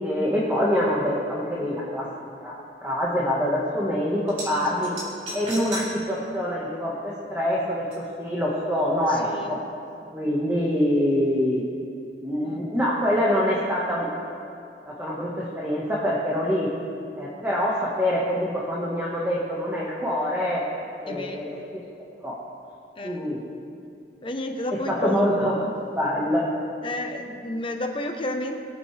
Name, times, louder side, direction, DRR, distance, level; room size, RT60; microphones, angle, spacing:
voice 1, 0.0-2.1 2.4-4.9 5.3-9.6 10.1-11.6 12.2-14.1 14.8-16.7 17.1-20.6 21.0-21.8 22.2-22.3 23.0-23.4 24.7-25.7 25.9-26.5, equal, 10° right, -6 dB, 1.6 m, -25 dB
sound 1, 4.3-4.5 4.8-5.9 6.3-6.4 7.9-8.0, right 1 dB, 35° right, 3.7 m, -34 dB
voice 2, 4.4-5.2 9.1-9.6 12.4-12.6 21.1-21.5 23.0-23.2 24.2-25.7 26.8-28.6, left 1 dB, 30° left, 3 dB, 1.0 m, -32 dB
23.0 x 8.7 x 3.4 m, 2.5 s
head